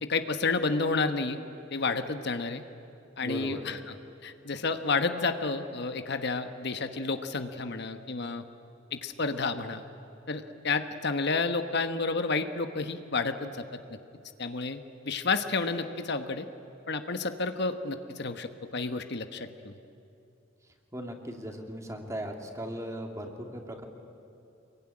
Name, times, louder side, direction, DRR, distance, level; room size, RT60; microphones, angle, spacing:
voice 1, 0.0-1.4 1.7-2.6 3.2-3.9 4.2-8.4 8.9-9.8 10.3-13.6 14.4-16.4 16.9-19.7, left 3 dB, 60° left, 8 dB, 1.2 m, -30 dB
voice 2, 3.2-3.6 20.9-23.8, equal, 15° right, 3 dB, 2.7 m, -38 dB
26.5 x 22.0 x 9.9 m, 2.7 s
head